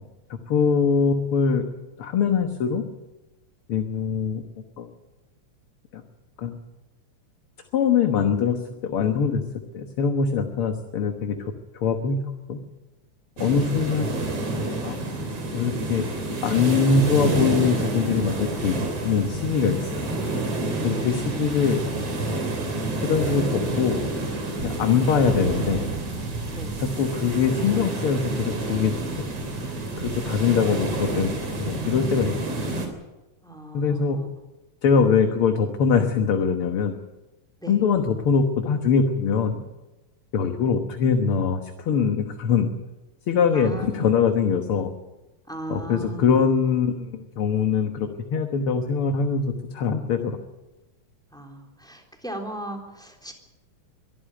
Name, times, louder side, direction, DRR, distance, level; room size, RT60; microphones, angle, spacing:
voice 1, 0.5-1.6 2.0-2.8 3.7-4.4 4.8-4.9 5.9-6.0 6.4-6.5 7.7-9.4 9.7-12.2 12.5-12.6 13.4-14.1 14.8-15.0 15.5-16.1 16.4-18.8 19.0-20.1 20.8-21.8 23.0-24.0 24.6-25.8 26.8-29.1 30.0-31.3 31.6-32.3 33.7-34.2 34.8-36.9 37.7-39.6 40.3-42.7 43.3-44.9 45.7-50.4, left 6 dB, 55° left, 5 dB, 1.9 m, -23 dB
sound 1, 13.4-32.9, right 2 dB, 55° right, 4.4 m, -28 dB
voice 2, 21.0-21.3 26.5-26.8 33.4-34.3 37.6-37.8 43.5-44.0 45.5-46.3 51.3-53.3, right 2 dB, ahead, 2 dB, 3.3 m, -37 dB
23.0 x 14.0 x 9.0 m, 1.1 s
omnidirectional pair, 3.4 m